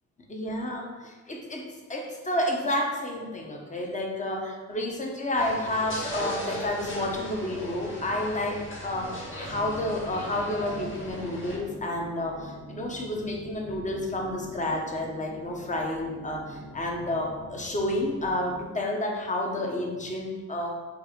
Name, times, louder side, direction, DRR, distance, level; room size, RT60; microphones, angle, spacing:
voice 1, 0.3-20.8, left 1 dB, 25° left, 0 dB, 1.3 m, -30 dB
sound 1, 5.4-11.6, equal, 40° left, 1.8 m, -37 dB
sound 2, 9.4-18.6, left 1 dB, 80° left, 1.9 m, -45 dB
7.7 x 2.9 x 5.2 m, 1.3 s
cardioid pair, 90°, 30 cm